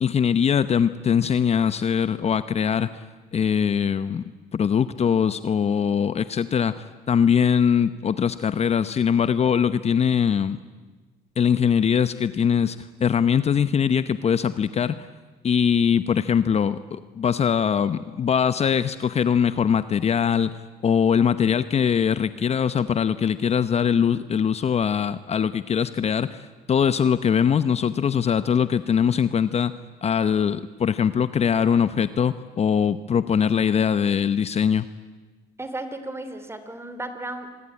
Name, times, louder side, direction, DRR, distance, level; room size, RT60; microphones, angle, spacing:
voice 1, 0.0-3.0 3.3-4.2 4.5-10.6 11.4-15.1 15.4-20.5 20.8-29.7 30.0-34.9, left 7 dB, 40° left, 14 dB, 0.9 m, -22 dB
voice 2, 35.6-37.5, right 2 dB, 15° right, 10 dB, 3.4 m, -34 dB
26.5 x 22.0 x 9.8 m, 1.3 s
cardioid pair, 110°, 17 cm